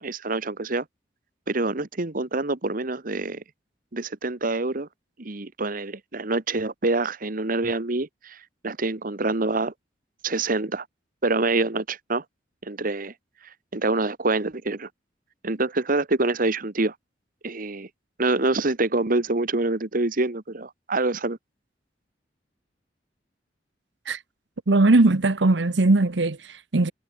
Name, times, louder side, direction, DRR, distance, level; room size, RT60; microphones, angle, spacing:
voice 1, 0.0-0.8 1.5-3.4 3.9-4.9 5.2-9.7 10.2-10.8 11.2-12.2 12.6-13.1 13.7-14.9 15.4-16.9 17.4-17.9 18.2-21.4, right 2 dB, 50° right, 1.4 m, -26 dB
voice 2, 24.7-26.9, right 2 dB, 80° right, 1.0 m, -19 dB
head